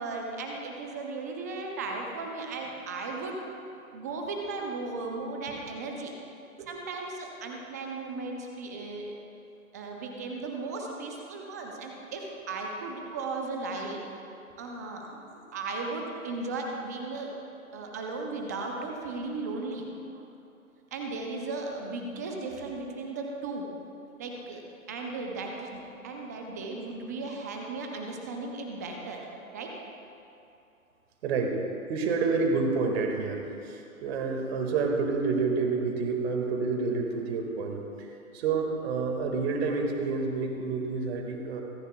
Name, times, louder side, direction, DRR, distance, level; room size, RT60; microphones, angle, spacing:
voice 1, 0.0-3.4 3.9-6.1 6.7-9.1 9.7-14.0 14.6-15.0 15.5-17.3 17.7-19.9 20.9-23.7 24.2-29.3 29.5-29.7, right 3 dB, 15° right, 1 dB, 0.4 m, -36 dB
voice 2, 31.2-31.6 31.9-38.1 38.3-41.6, right 4 dB, 45° right, 3 dB, 1.8 m, -29 dB
25.5 x 9.7 x 2.2 m, 2.7 s
hypercardioid pair, 130°, 43 cm